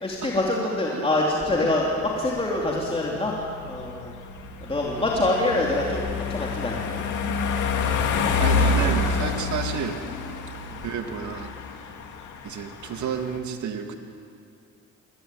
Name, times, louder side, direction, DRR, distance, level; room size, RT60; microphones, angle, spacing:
voice 1, 0.0-3.3 3.7-4.1 4.6-7.0 10.7-10.8, left 2 dB, 20° left, -3 dB, 3.5 m, -25 dB
sound 1, 1.7-13.4, left 4 dB, 85° left, 2.3 m, -28 dB
voice 2, 7.3-7.8 8.4-10.0 10.8-11.5 12.4-14.0, right 8 dB, 70° right, 5 dB, 2.3 m, -31 dB
23.5 x 16.0 x 9.4 m, 2.3 s
cardioid pair, 90°, 30 cm